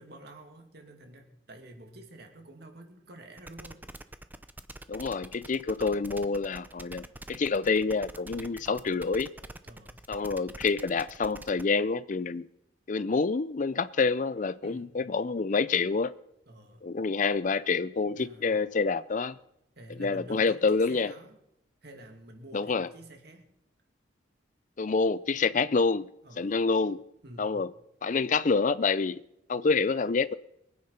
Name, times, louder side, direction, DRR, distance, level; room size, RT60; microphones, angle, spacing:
voice 1, 0.0-3.8 8.3-8.7 9.6-10.0 14.6-15.0 16.5-16.9 18.1-18.5 19.8-21.4 21.8-23.5 26.2-26.6 27.2-27.7, right 1 dB, 55° right, 2.6 m, -49 dB
sound 1, 3.4-11.6, right 1 dB, 10° right, 0.6 m, -45 dB
voice 2, 4.9-7.0 7.3-9.3 10.1-12.5 12.9-16.1 16.8-19.4 20.0-21.1 22.5-22.9 24.8-26.1 26.4-27.0 27.4-27.7 28.0-29.2 29.5-30.3, left 4 dB, 40° left, 0.4 m, -27 dB
23.0 x 9.4 x 5.7 m
head